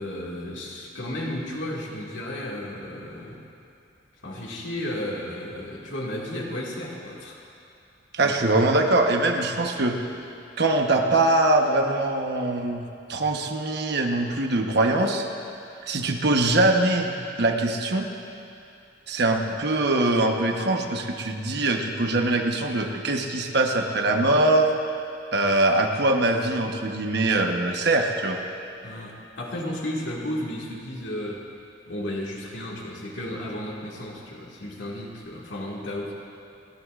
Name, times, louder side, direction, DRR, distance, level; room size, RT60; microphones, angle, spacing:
voice 1, 0.0-3.4 4.2-7.4 8.2-8.6 28.8-31.4 31.9-36.1, left 1 dB, 85° left, -3 dB, 2.1 m, -33 dB
voice 2, 8.1-10.0 10.6-12.8 13.1-15.3 15.9-18.1 19.1-24.7 25.3-28.4, right 2 dB, 65° right, 3 dB, 1.1 m, -22 dB
29.5 x 11.5 x 2.5 m, 2.6 s
head